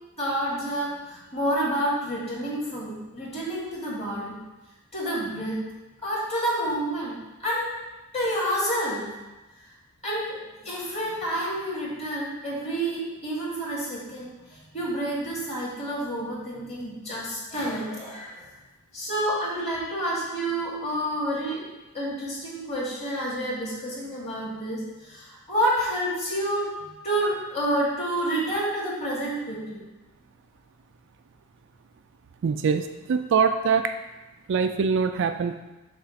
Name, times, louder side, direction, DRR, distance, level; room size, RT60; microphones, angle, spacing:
voice 1, 0.2-4.4 4.9-5.6 6.0-7.8 8.1-9.1 10.0-18.4 18.9-21.6 21.9-29.8, right 1 dB, 30° left, -6 dB, 2.0 m, -29 dB
voice 2, 32.4-33.9 34.5-35.6, right 6 dB, 55° right, 7 dB, 0.3 m, -23 dB
7.4 x 2.5 x 5.7 m, 1.1 s
head